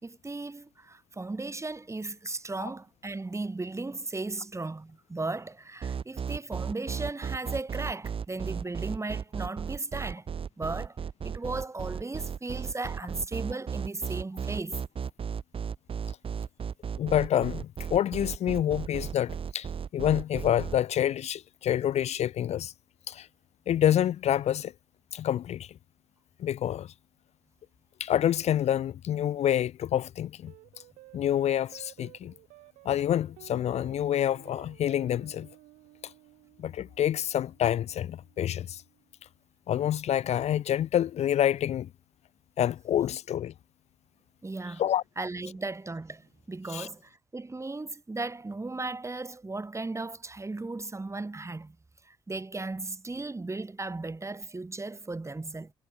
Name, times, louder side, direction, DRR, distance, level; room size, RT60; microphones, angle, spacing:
voice 1, 0.0-10.3 10.6-11.0 11.2-14.8 44.4-44.8 45.2-51.8 52.0-55.7, right 3 dB, 25° right, 1.8 m, -36 dB
sound 1, 5.8-20.8, right 7 dB, 45° right, 0.8 m, -35 dB
voice 2, 17.0-19.7 19.9-22.7 23.1-23.3 23.7-24.7 25.1-25.7 26.4-26.9 28.0-30.5 31.1-32.3 32.9-35.5 36.6-38.8 39.7-41.9 42.6-43.5 44.8-45.0 46.7-46.9, left 11 dB, 60° left, 0.6 m, -27 dB
sound 2, 30.5-39.1, right 20 dB, 80° right, 2.4 m, -55 dB
hypercardioid pair, 45°, 13 cm